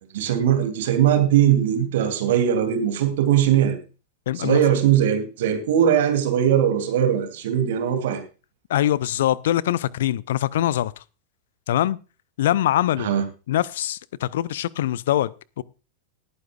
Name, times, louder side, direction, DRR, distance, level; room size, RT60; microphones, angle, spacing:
voice 1, 0.1-3.8 4.4-8.2 13.0-13.2, right 10 dB, 55° right, 7 dB, 2.7 m, -20 dB
voice 2, 4.3-4.6 8.7-10.9 11.7-12.0 12.4-13.1 13.5-15.3 15.6-15.7, left 12 dB, 60° left, 23 dB, 0.5 m, -23 dB
19.0 x 9.6 x 2.4 m, 0.32 s
figure-of-eight pair, 90°, 0 cm